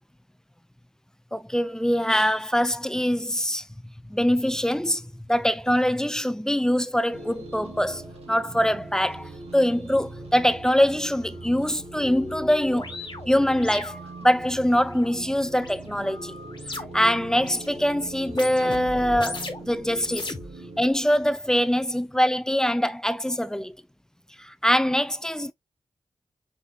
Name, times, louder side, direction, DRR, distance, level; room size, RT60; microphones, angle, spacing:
voice 1, 1.3-3.6 4.1-13.0 13.3-16.3 16.7-20.3 20.8-23.7 24.4-25.5, equal, 5° left, 0.5 m, -23 dB
sound 1, 7.1-20.9, right 2 dB, 70° right, 1.4 m, -41 dB
sound 2, 11.0-11.1 11.5-17.1 17.4-17.9 18.2-19.7 20.0-20.9, left 3 dB, 45° left, 1.4 m, -38 dB
5.4 x 3.8 x 2.3 m
cardioid pair, 50°, 11 cm